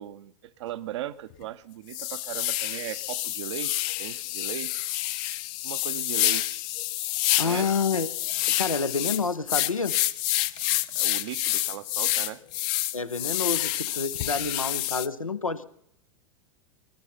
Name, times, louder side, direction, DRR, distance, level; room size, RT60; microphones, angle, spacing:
voice 1, 0.0-4.9 5.6-6.6 7.4-7.7 10.6-10.7 10.9-12.4, right 12 dB, 60° right, 0.7 m, -38 dB
sound 1, 0.7-0.8 1.3-1.4 1.9-15.1, left 15 dB, 40° left, 0.6 m, -28 dB
voice 2, 7.4-8.1 8.5-10.0 12.9-15.6, left 4 dB, 90° left, 0.8 m, -28 dB
19.5 x 12.0 x 5.6 m
figure-of-eight pair, 95°, 17 cm